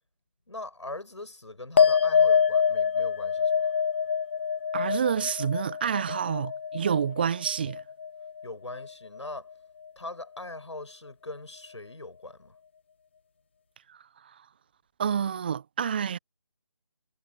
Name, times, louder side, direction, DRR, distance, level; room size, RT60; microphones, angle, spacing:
voice 1, 0.5-3.7 8.4-9.5 10.0-12.6, left 2 dB, 70° left, 7.4 m, -41 dB
sound 1, 1.8-8.5 8.7-9.4, left 7 dB, 25° left, 0.9 m, -26 dB
voice 2, 4.7-7.8 13.9-14.0 15.0-16.2, right 7 dB, 20° right, 0.7 m, -28 dB
figure-of-eight pair, 155°, 16 cm